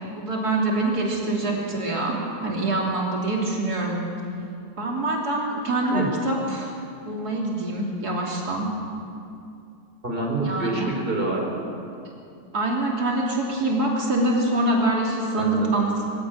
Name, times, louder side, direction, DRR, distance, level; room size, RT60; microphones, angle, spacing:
voice 1, 0.2-4.0 4.8-6.7 7.1-8.7 10.4-10.9 12.5-16.1, right 2 dB, 85° right, -2 dB, 3.7 m, -25 dB
voice 2, 10.0-11.6 15.4-15.7, right 2 dB, 35° right, 0 dB, 4.4 m, -26 dB
24.0 x 16.5 x 8.9 m, 2.5 s
omnidirectional pair, 1.6 m